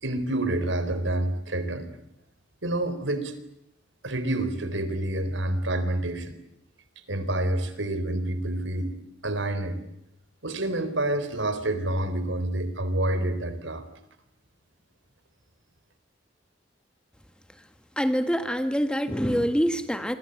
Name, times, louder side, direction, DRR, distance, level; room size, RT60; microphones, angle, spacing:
voice 1, 0.0-1.9 2.6-3.3 4.0-6.4 7.1-8.9 9.2-9.8 10.4-13.8, right 1 dB, 80° right, 12 dB, 4.0 m, -28 dB
voice 2, 18.0-20.1, equal, 5° left, 8 dB, 1.7 m, -25 dB
28.0 x 25.5 x 8.0 m, 0.79 s
head